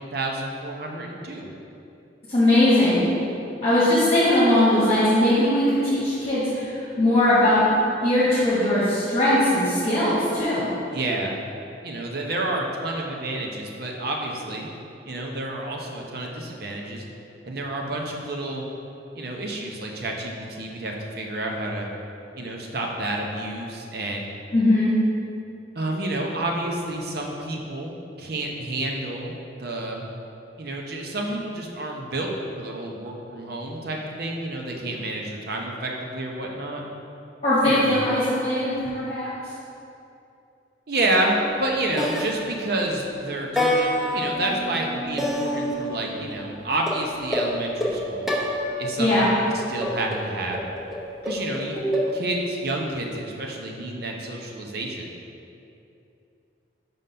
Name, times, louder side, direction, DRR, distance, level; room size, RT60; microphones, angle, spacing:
voice 1, 0.0-1.5 10.9-11.3 11.8-14.7 15.1-17.0 17.4-18.6 19.1-21.9 22.3-24.3 25.7-30.0 30.6-36.8 37.6-37.9 40.9-48.3 48.8-50.6 51.2-51.8 52.1-55.1, right 2 dB, 60° right, 0 dB, 0.8 m, -29 dB
voice 2, 2.3-3.1 3.6-7.7 8.0-10.6 24.5-24.9 37.4-39.3 49.0-49.3, left 1 dB, 35° left, -10 dB, 1.3 m, -20 dB
sound 1, 41.4-41.7 42.0-43.0 43.6-46.4 46.9-49.0 49.8-52.1, equal, ahead, 0.7 m, -27 dB
5.4 x 3.8 x 5.5 m, 2.7 s
head